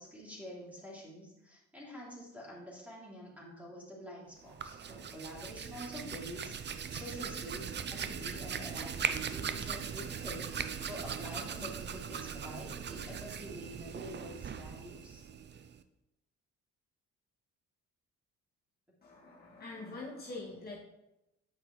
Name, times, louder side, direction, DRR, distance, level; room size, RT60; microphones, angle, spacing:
voice 1, 0.0-15.2, equal, 5° right, -5 dB, 3.0 m, -47 dB
Hands, 4.4-15.8, right 7 dB, 35° right, 0.5 m, -39 dB
voice 2, 19.0-20.8, left 2 dB, 30° left, -6 dB, 1.9 m, -44 dB
8.4 x 6.0 x 3.2 m, 0.90 s
cardioid pair, 90°, 30 cm